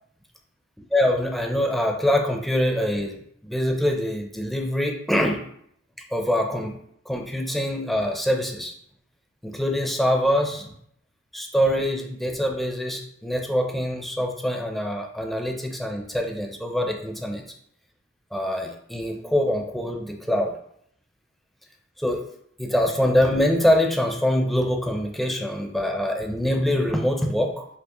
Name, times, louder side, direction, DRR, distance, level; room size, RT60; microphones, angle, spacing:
voice 1, 0.9-5.4 6.1-6.8 7.1-8.7 9.4-10.7 11.3-17.4 18.3-20.6 22.0-22.2 22.6-27.7, equal, ahead, 2 dB, 0.5 m, -24 dB
5.7 x 3.0 x 3.0 m, 0.68 s
head